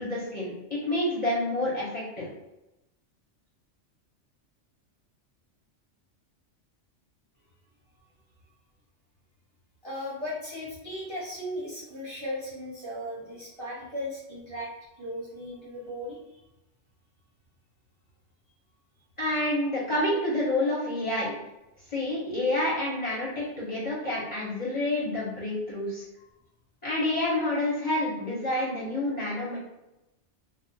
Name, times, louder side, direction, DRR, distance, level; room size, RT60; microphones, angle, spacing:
voice 1, 0.0-2.3 19.2-21.4 21.9-26.0 26.8-29.6, left 1 dB, 40° left, -7 dB, 0.7 m, -28 dB
voice 2, 9.8-14.7 15.0-16.4, left 1 dB, 25° right, -8 dB, 0.8 m, -37 dB
2.3 x 2.0 x 3.8 m, 0.94 s
omnidirectional pair, 1.3 m